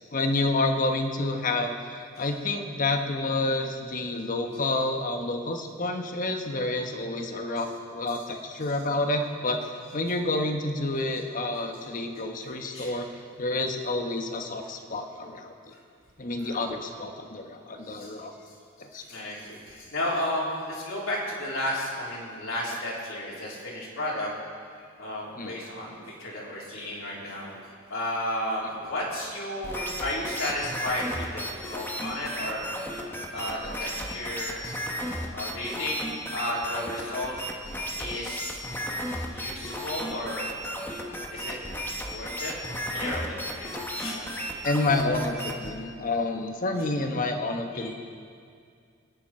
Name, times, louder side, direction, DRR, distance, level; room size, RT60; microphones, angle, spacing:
voice 1, 0.1-13.1 13.4-15.7 16.2-18.3 18.8-19.0 25.4-25.5 44.6-47.9, left 2 dB, 40° left, 4 dB, 1.2 m, -29 dB
voice 2, 12.6-13.0 16.4-16.6 17.8-18.1 18.9-24.3 25.0-27.6 27.9-32.7 33.3-34.8 35.3-36.0 36.3-37.3 38.0-38.6 39.3-40.5 41.3-41.6 42.1-42.5 42.9-44.4 46.0-46.1 47.7-47.9, left 1 dB, 70° left, -5 dB, 3.8 m, -33 dB
sound 1, 29.6-45.7, equal, 10° left, 1.2 m, -34 dB
22.5 x 10.0 x 4.4 m, 2.3 s
head